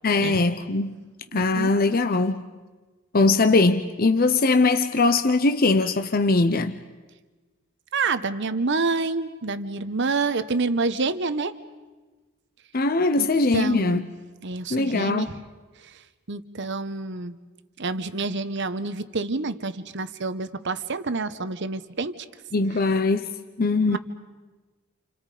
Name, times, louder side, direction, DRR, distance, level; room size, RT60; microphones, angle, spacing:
voice 1, 0.0-1.0 1.3-2.4 3.1-6.8 12.7-14.1 14.7-15.3 22.5-23.3 23.6-24.0, left 3 dB, 45° left, 0.7 m, -21 dB
voice 2, 1.3-1.7 7.9-11.5 13.2-13.3 13.5-14.0 14.4-15.4 16.3-17.4 17.8-22.1 23.8-24.0, right 3 dB, 55° right, 1.0 m, -28 dB
30.0 x 29.0 x 5.0 m
head